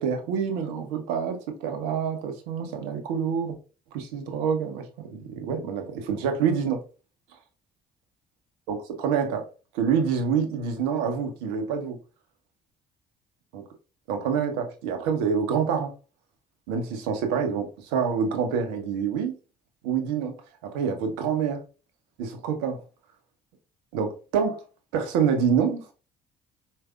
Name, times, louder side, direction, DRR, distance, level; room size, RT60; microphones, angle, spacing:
voice 1, 0.0-3.6 3.9-6.8 8.7-9.5 9.7-12.0 13.5-13.6 14.1-15.9 16.7-19.4 19.8-20.4 20.6-21.6 22.2-22.8 23.9-24.6 24.9-25.9, right 6 dB, 75° right, 0.8 m, -27 dB
4.7 x 2.5 x 2.4 m
hypercardioid pair, 50°, 20 cm